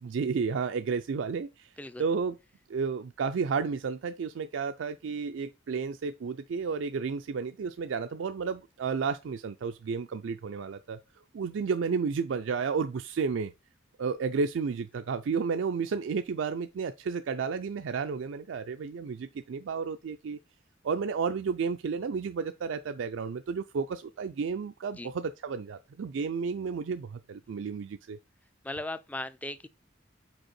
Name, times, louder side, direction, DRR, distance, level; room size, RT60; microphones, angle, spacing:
voice 1, 0.0-1.7 2.0-2.4 2.7-11.0 11.3-13.5 14.0-20.4 20.8-28.2, right 5 dB, 80° right, 0.4 m, -32 dB
voice 2, 28.6-29.7, left 1 dB, 10° left, 0.3 m, -37 dB
5.3 x 4.5 x 4.2 m
head